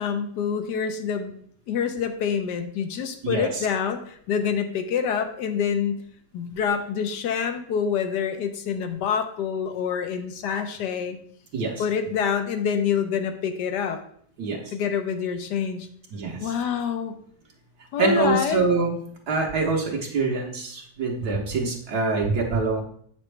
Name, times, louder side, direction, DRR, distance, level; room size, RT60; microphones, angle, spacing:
voice 1, 0.0-1.3 1.7-6.0 6.3-11.2 11.8-14.0 14.7-15.9 16.4-17.2 17.9-18.6, left 7 dB, 75° left, 7 dB, 1.3 m, -26 dB
voice 2, 3.2-3.7 11.5-11.8 14.4-14.7 16.1-16.5 18.0-19.0 19.3-22.8, right 3 dB, 65° right, 0 dB, 1.5 m, -25 dB
7.8 x 6.1 x 3.3 m, 0.63 s
omnidirectional pair, 1.9 m